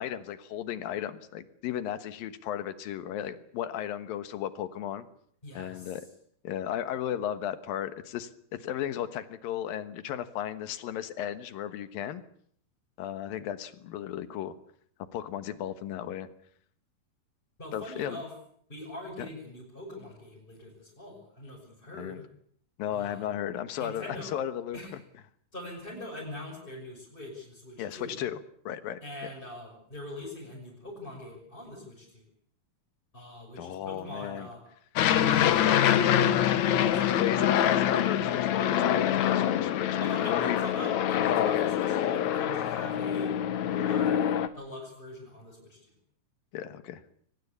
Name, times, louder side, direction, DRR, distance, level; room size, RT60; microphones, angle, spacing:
voice 1, 0.0-5.1 5.5-6.0 6.4-12.2 13.0-14.5 15.1-16.3 17.7-18.2 21.9-22.2 22.8-24.8 27.8-28.4 28.7-29.3 33.6-34.5 37.2-40.6 41.3-41.7 46.5-47.0, left 10 dB, 80° left, 12 dB, 3.1 m, -35 dB
voice 2, 5.4-6.0 17.6-18.3 18.7-22.3 22.9-23.3 23.8-24.4 24.7-24.9 25.5-28.3 29.0-32.2 33.1-34.6 35.0-36.3 36.9-37.4 40.0-45.9, left 1 dB, 15° left, -4 dB, 6.4 m, -42 dB
Aircraft, 35.0-44.5, left 10 dB, 65° left, 2.2 m, -25 dB
23.5 x 19.5 x 8.3 m, 0.64 s
omnidirectional pair, 4.1 m